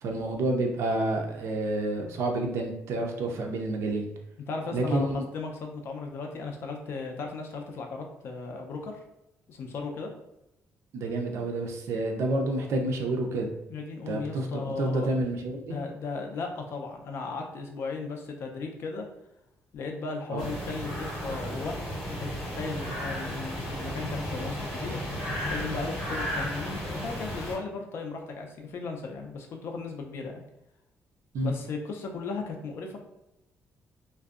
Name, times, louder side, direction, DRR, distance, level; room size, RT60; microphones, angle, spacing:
voice 1, 0.0-4.1 4.7-5.2 10.9-13.5 14.1-15.8 20.3-20.5 31.3-31.5, right 2 dB, 60° right, 2 dB, 0.4 m, -29 dB
voice 2, 4.5-9.0 9.5-10.1 13.7-15.1 15.7-19.1 19.7-21.8 22.1-25.0 25.5-30.4 31.4-33.0, left 4 dB, 50° left, 2 dB, 0.4 m, -36 dB
sound 1, 20.4-27.5, equal, 10° left, 1.3 m, -34 dB
2.6 x 2.1 x 2.4 m, 0.88 s
cardioid pair, 180°, 5 cm